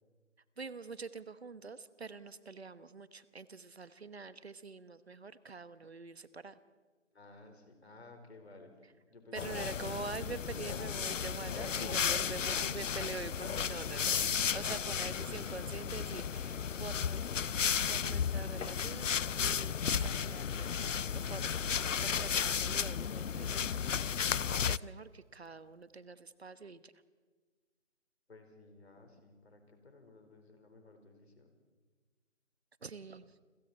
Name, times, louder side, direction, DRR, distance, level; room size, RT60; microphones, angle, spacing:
voice 1, 0.6-6.6 9.3-14.1 14.5-17.3 17.6-19.1 19.4-24.3 24.6-26.9 32.8-33.3, right 4 dB, 55° right, 14 dB, 1.2 m, -45 dB
voice 2, 7.1-9.9 11.8-12.5 13.4-13.5 14.1-14.2 14.5-14.6 28.3-31.6, left 3 dB, 55° left, 5 dB, 4.9 m, -54 dB
sound 1, 9.4-24.8, left 7 dB, 75° left, 0.6 m, -34 dB
Crackle, 20.0-26.1, right 3 dB, 25° right, 1.1 m, -58 dB
29.5 x 22.5 x 4.4 m, 1.4 s
figure-of-eight pair, 160°, 38 cm